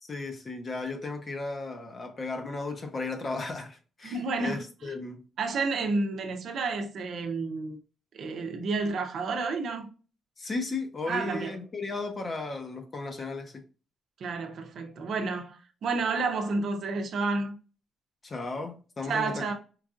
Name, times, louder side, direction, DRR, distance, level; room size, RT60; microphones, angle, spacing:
voice 1, 0.0-5.2 10.4-13.6 18.2-19.5, left 3 dB, 30° left, 0.8 m, -35 dB
voice 2, 4.0-4.9 5.4-7.8 8.1-9.9 11.1-11.5 14.2-17.6 19.1-19.5, right 3 dB, 60° right, 0.7 m, -30 dB
4.6 x 2.5 x 2.4 m
cardioid pair, 130°, 0 cm